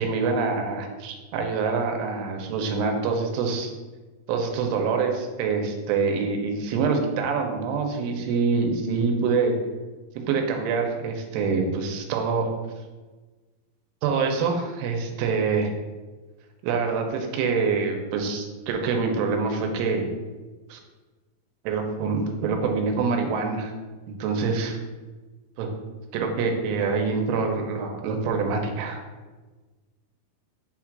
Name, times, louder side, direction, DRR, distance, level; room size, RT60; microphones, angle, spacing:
voice 1, 0.0-3.7 4.3-9.6 10.2-12.5 14.0-15.7 16.6-20.1 20.7-20.8 21.6-23.7 24.1-24.8 25.6-25.7 26.1-29.0, right 4 dB, 85° right, 3 dB, 3.2 m, -25 dB
8.3 x 5.8 x 2.5 m, 1.3 s
omnidirectional pair, 5.5 m